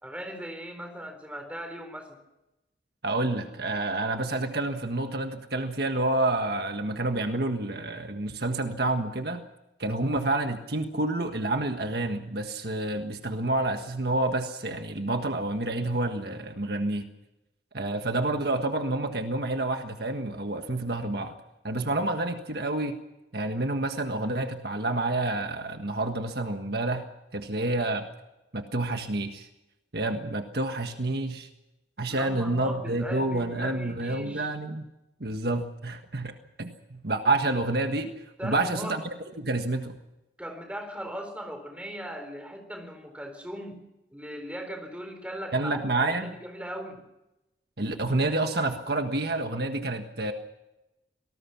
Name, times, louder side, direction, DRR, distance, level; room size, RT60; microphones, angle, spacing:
voice 1, 0.0-2.2 32.1-34.5 38.4-39.0 40.4-43.8 44.1-47.0, equal, 5° right, 6 dB, 4.2 m, -38 dB
voice 2, 3.0-9.4 9.8-17.1 17.7-21.4 21.6-23.0 23.3-27.0 27.3-28.1 28.5-29.5 29.9-31.5 32.0-34.8 35.2-38.1 38.4-39.0 39.4-39.9 45.5-46.3 47.8-50.3, right 2 dB, 60° right, 6 dB, 1.6 m, -28 dB
25.5 x 19.0 x 6.1 m, 0.95 s
head